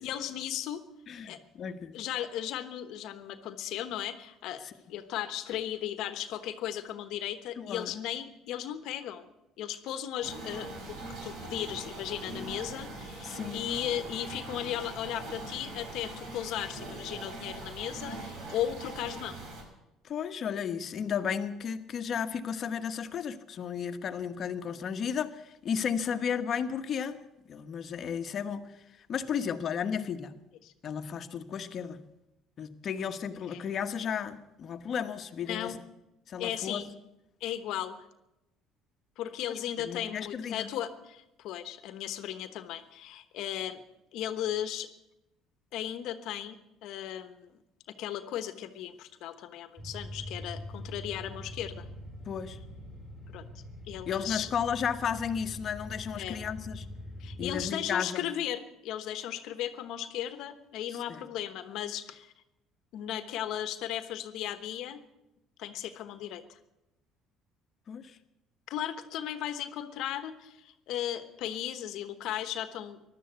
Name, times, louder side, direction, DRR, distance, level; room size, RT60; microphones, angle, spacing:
voice 1, 0.0-0.8 1.2-1.4 1.9-4.6 4.9-9.2 9.6-19.4 30.6-30.7 33.5-33.6 35.5-35.8 36.4-36.9 37.4-38.1 39.2-43.8 44.1-44.9 45.7-47.6 47.9-51.9 53.3-53.4 53.9-54.5 56.2-56.4 57.2-62.3 62.9-65.0 65.6-66.6 68.7-73.1, left 11 dB, 70° left, 11 dB, 1.2 m, -36 dB
voice 2, 1.1-2.0 4.6-4.7 7.6-7.9 13.2-13.6 20.0-27.2 27.5-30.3 30.8-32.0 32.6-35.7 36.3-36.8 39.8-40.7 52.2-52.6 54.1-56.9 57.4-58.3 60.9-61.2 67.9-68.2, left 7 dB, 45° left, 8 dB, 1.2 m, -34 dB
sound 1, 10.2-19.6, right 2 dB, 65° right, 4.9 m, -42 dB
sound 2, 49.8-57.7, left 1 dB, 10° right, 3.8 m, -43 dB
15.0 x 12.0 x 8.1 m, 0.94 s
cardioid pair, 110°, 0 cm